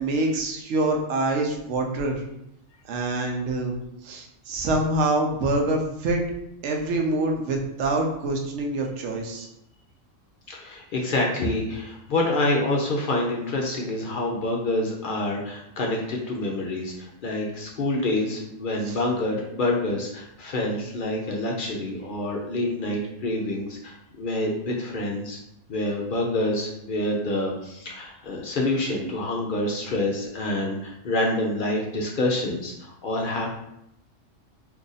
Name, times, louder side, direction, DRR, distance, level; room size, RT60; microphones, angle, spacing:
voice 1, 0.0-2.2 2.9-3.7 4.0-6.2 6.6-9.5 18.9-19.0, right 2 dB, 70° right, 2 dB, 0.9 m, -25 dB
voice 2, 10.5-25.4 25.7-33.5, left 1 dB, 60° left, -1 dB, 0.5 m, -27 dB
2.7 x 2.5 x 3.8 m, 0.81 s
omnidirectional pair, 1.3 m